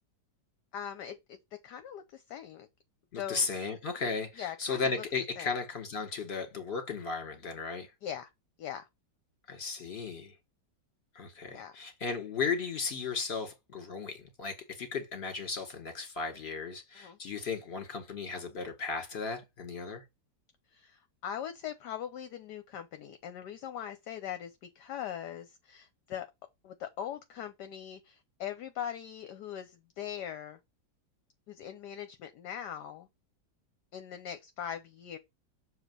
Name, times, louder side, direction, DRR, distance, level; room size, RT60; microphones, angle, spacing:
voice 1, 0.7-1.4 1.6-2.7 3.2-3.5 4.0-4.1 4.4-5.0 5.4-5.6 8.0-8.3 8.6-8.9 11.5-11.8 16.9-17.2 20.7-26.3 26.6-30.6 31.5-33.1 33.9-35.2, left 9 dB, 70° left, 1.2 m, -41 dB
voice 2, 3.1-7.9 9.5-10.3 11.2-20.0, left 5 dB, 35° left, 1.9 m, -35 dB
7.1 x 3.1 x 5.4 m
omnidirectional pair, 2.0 m